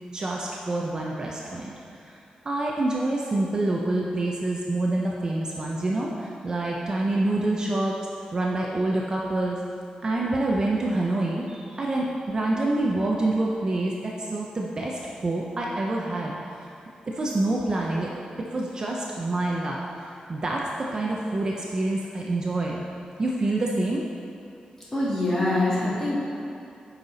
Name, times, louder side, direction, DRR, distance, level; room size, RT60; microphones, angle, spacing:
voice 1, 0.1-2.0 2.4-8.0 8.3-9.6 10.0-16.3 17.1-18.1 18.4-19.8 20.3-22.8 23.2-24.1, right 2 dB, 30° right, -2 dB, 0.6 m, -27 dB
voice 2, 24.9-26.2, left 2 dB, 20° left, -8 dB, 1.9 m, -24 dB
8.9 x 5.6 x 4.0 m, 2.6 s
wide cardioid pair, 165°, 2 cm